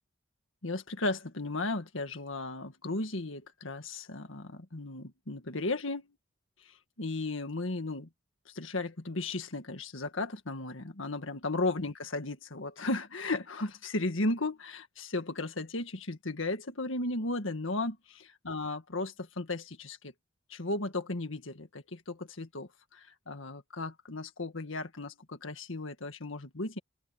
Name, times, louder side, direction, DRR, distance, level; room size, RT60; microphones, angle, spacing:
voice 1, 0.6-6.1 6.6-8.1 8.4-18.0 18.4-20.1 20.5-26.8, left 2 dB, 80° left, 1.8 m, -35 dB
open air
head